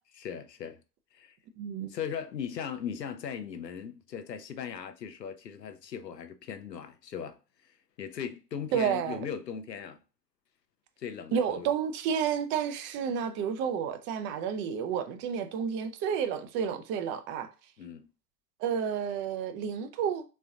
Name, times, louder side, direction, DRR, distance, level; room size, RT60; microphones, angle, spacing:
voice 1, 0.2-0.8 1.1-1.4 1.9-10.0 11.0-11.7 17.8-18.1, left 8 dB, 80° left, 0.7 m, -39 dB
voice 2, 1.6-1.9 8.7-9.3 11.3-17.5 18.6-20.2, right 7 dB, 25° right, 0.4 m, -30 dB
4.2 x 3.8 x 2.4 m
figure-of-eight pair, 80°, 49 cm